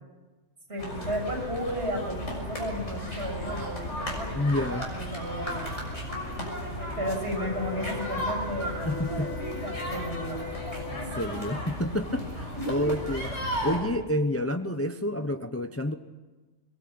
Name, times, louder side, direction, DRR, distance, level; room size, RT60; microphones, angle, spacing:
voice 1, 0.7-6.1 6.6-11.1 12.5-12.6, equal, 55° right, 3 dB, 6.8 m, -34 dB
sound 1, 0.8-13.8, equal, 85° left, 7.0 m, -34 dB
voice 2, 4.3-4.9 8.9-9.3 11.2-13.3 13.6-15.9, left 1 dB, 15° left, 8 dB, 0.8 m, -29 dB
sound 2, 7.4-11.3, left 12 dB, 60° left, 2.9 m, -41 dB
23.0 x 22.0 x 8.8 m, 1.2 s
omnidirectional pair, 1.2 m